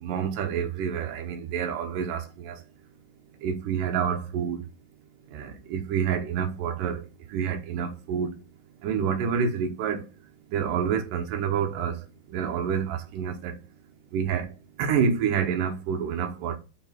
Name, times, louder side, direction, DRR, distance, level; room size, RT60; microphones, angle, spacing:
voice 1, 0.0-2.6 3.4-4.6 5.3-7.0 7.3-8.3 8.8-10.0 10.5-12.0 12.3-13.6 14.1-14.5 14.8-16.6, right 7 dB, 70° right, 2.2 m, -28 dB
6.0 x 4.4 x 5.6 m
omnidirectional pair, 4.7 m